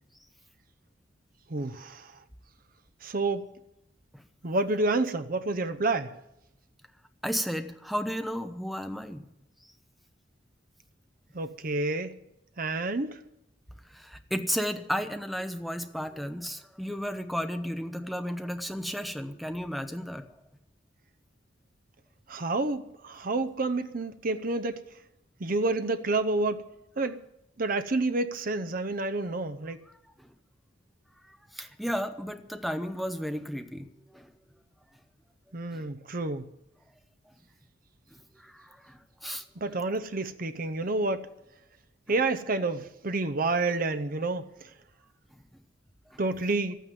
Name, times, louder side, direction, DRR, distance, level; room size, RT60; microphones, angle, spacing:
voice 1, 1.5-2.1 3.0-3.4 4.4-6.1 11.3-12.1 12.6-13.2 22.3-24.8 25.4-26.6 27.0-27.2 27.6-29.8 35.5-36.4 39.6-41.3 42.1-44.5 46.2-46.8, right 2 dB, 50° right, 0.7 m, -29 dB
voice 2, 7.2-9.3 13.9-20.3 29.9-30.0 30.2-30.3 31.3-34.3 35.7-35.9 38.4-39.4 46.1-46.2, equal, ahead, 0.8 m, -34 dB
12.5 x 9.2 x 9.4 m
head